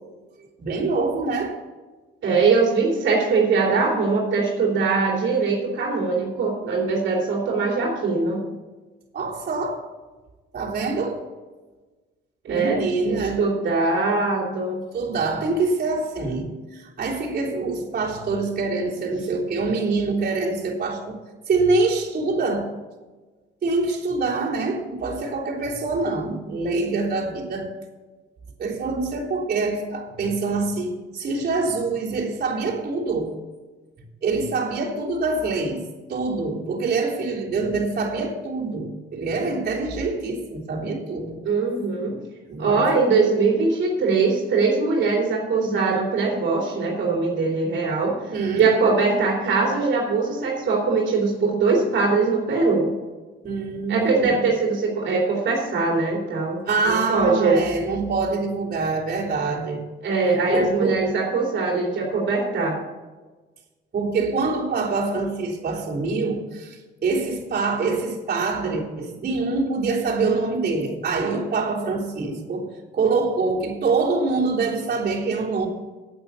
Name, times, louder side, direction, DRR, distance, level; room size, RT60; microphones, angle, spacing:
voice 1, 0.6-1.6 9.1-9.8 10.5-11.2 12.5-13.7 14.9-21.2 21.5-22.7 23.6-27.7 28.6-33.4 34.2-35.8 36.1-41.4 42.5-42.9 48.3-48.7 53.4-54.3 56.7-59.9 60.3-61.1 63.9-75.7, right 3 dB, 50° right, 3.5 m, -25 dB
voice 2, 2.2-8.4 12.4-12.8 13.1-14.8 41.4-42.2 42.6-52.9 53.9-57.6 60.0-62.8, right 4 dB, 70° right, 3.0 m, -22 dB
8.8 x 8.8 x 7.0 m
cardioid pair, 90°, 20 cm